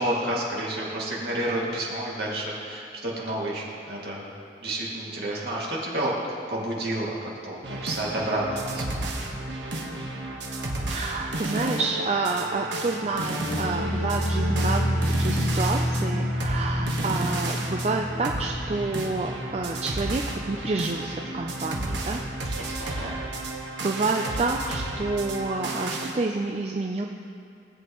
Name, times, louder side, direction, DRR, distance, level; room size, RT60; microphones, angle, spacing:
voice 1, 0.0-4.3 4.6-6.1 6.5-9.1 22.6-23.2, right 1 dB, 60° right, -5 dB, 2.2 m, -30 dB
sound 1, 7.6-26.1, right 2 dB, 75° right, 1.3 m, -33 dB
voice 2, 10.9-20.2 20.5-22.2 22.8-23.3 23.8-27.1, right 3 dB, 35° right, 1 dB, 0.4 m, -29 dB
sound 2, 13.1-20.2 20.5-20.9 21.3-21.4, equal, 80° left, 1.5 m, -28 dB
19.5 x 8.1 x 3.0 m, 2.4 s
head